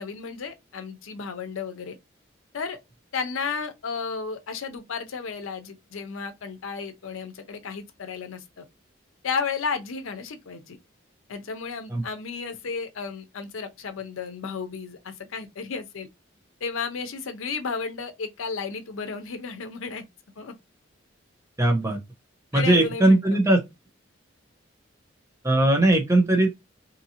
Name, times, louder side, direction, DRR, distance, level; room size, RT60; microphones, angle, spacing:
voice 1, 0.0-2.0 2.5-2.8 3.1-8.7 9.2-10.8 11.3-16.1 16.6-20.1 20.4-20.5 22.5-23.2, left 5 dB, 90° left, 0.6 m, -33 dB
voice 2, 21.6-22.0 22.5-23.6 25.4-26.5, right 1 dB, 15° right, 0.6 m, -19 dB
2.7 x 2.6 x 2.8 m
head